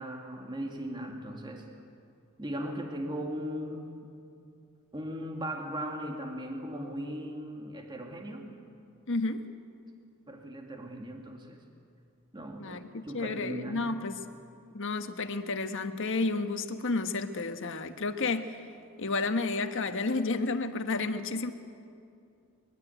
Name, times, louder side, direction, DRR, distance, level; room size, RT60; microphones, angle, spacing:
voice 1, 0.0-1.8 2.4-4.0 4.9-8.6 10.3-11.6 12.3-13.9, equal, 20° right, 2 dB, 2.1 m, -38 dB
voice 2, 9.1-9.4 12.6-14.1 14.7-18.6 19.0-21.5, left 3 dB, 65° left, 8 dB, 1.4 m, -31 dB
24.0 x 22.0 x 9.1 m, 2.5 s
head